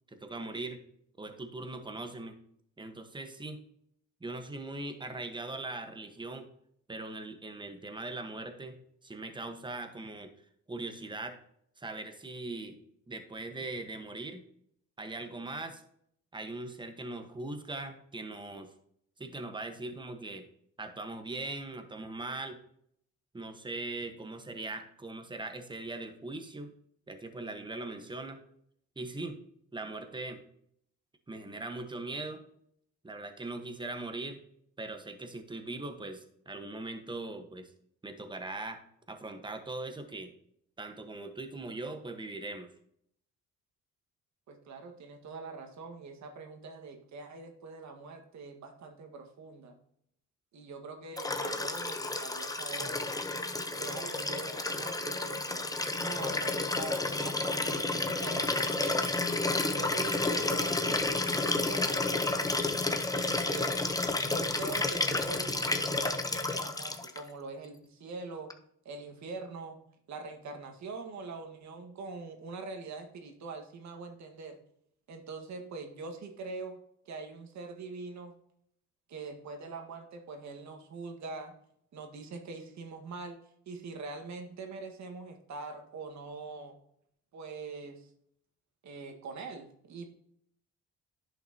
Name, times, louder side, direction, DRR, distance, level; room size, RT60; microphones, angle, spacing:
voice 1, 0.1-0.8 1.2-2.4 2.8-3.6 4.2-6.5 6.9-10.3 10.7-11.4 11.8-12.8 13.1-14.4 15.0-15.8 16.3-18.7 19.2-20.4 20.8-22.6 23.3-26.7 27.1-28.4 29.0-29.4 29.7-30.4 31.3-32.4 33.0-34.4 34.8-37.7 38.0-38.8 39.1-40.3 40.8-42.7, right 2 dB, 15° right, 6 dB, 1.3 m, -40 dB
voice 2, 44.5-49.8 50.5-53.0 53.8-58.9 59.4-62.6 63.0-63.8 64.2-68.5 68.8-69.8 70.1-74.6 75.1-78.3 79.1-81.5 81.9-83.4 83.6-86.7 87.3-88.1 88.8-90.0, right 3 dB, 65° right, 5 dB, 1.7 m, -43 dB
Liquid, 51.2-67.2 68.5-68.6, left 2 dB, 10° left, 0.8 m, -31 dB
10.5 x 5.8 x 2.9 m, 0.69 s
cardioid pair, 90°, 30 cm